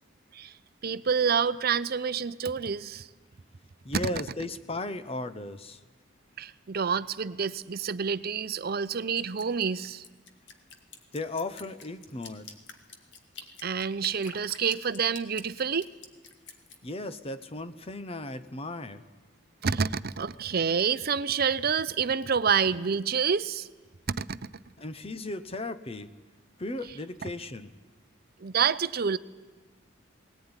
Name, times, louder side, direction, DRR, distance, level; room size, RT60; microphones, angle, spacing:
voice 1, 0.8-3.1 3.9-4.0 6.4-10.0 13.6-15.9 19.6-23.7 24.1-24.5 27.2-27.3 28.4-29.2, right 6 dB, 50° right, 15 dB, 0.6 m, -28 dB
voice 2, 3.8-5.8 11.1-12.5 16.8-19.0 24.8-26.1 26.6-27.7, left 2 dB, 30° left, 11 dB, 1.0 m, -36 dB
Drip, 9.2-16.8, left 6 dB, 65° left, 2.0 m, -47 dB
19.5 x 18.5 x 9.7 m, 1.3 s
head